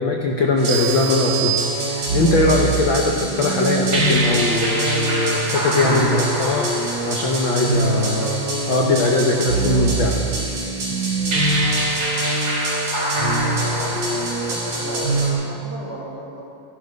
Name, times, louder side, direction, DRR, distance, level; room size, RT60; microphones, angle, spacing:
voice 1, 0.0-6.7 7.1-10.1, left 2 dB, 75° left, 0 dB, 1.1 m, -21 dB
sound 1, 0.6-15.3, right 2 dB, 65° right, 5.3 m, -23 dB
sound 2, 0.7-2.4, right 11 dB, 80° right, 2.3 m, -27 dB
voice 2, 13.2-16.4, right 1 dB, 35° right, -6 dB, 2.2 m, -35 dB
14.5 x 11.5 x 5.2 m, 2.4 s
omnidirectional pair, 3.6 m